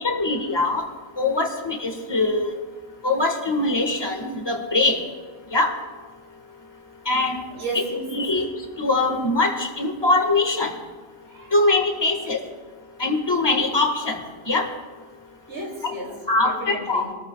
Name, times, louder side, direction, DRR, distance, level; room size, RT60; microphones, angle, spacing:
voice 1, 0.0-0.8 1.2-2.5 3.0-5.0 5.5-5.7 7.0-7.4 8.1-8.5 8.8-10.7 11.5-12.4 13.0-14.2 14.5-14.7 16.3-17.0, left 2 dB, 25° left, 3 dB, 1.6 m, -22 dB
voice 2, 7.5-8.2 11.3-11.5 15.5-16.2 16.4-17.1, right 1 dB, 65° right, -1 dB, 3.2 m, -32 dB
26.5 x 14.0 x 2.3 m, 1.4 s
omnidirectional pair, 1.1 m